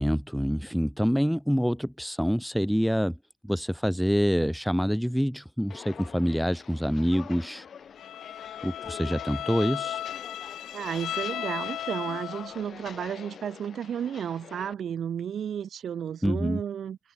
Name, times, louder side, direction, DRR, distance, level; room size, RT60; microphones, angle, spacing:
voice 1, 0.0-3.2 3.4-7.7 8.6-10.0 16.2-16.6, equal, ahead, 0.3 m, -26 dB
Walk footsteps, 5.7-14.7, left 7 dB, 55° left, 5.5 m, -45 dB
Bowed string instrument, 8.0-12.7, left 12 dB, 75° left, 0.4 m, -35 dB
voice 2, 10.7-17.0, right 8 dB, 60° right, 1.0 m, -33 dB
cardioid pair, 90°, 0 cm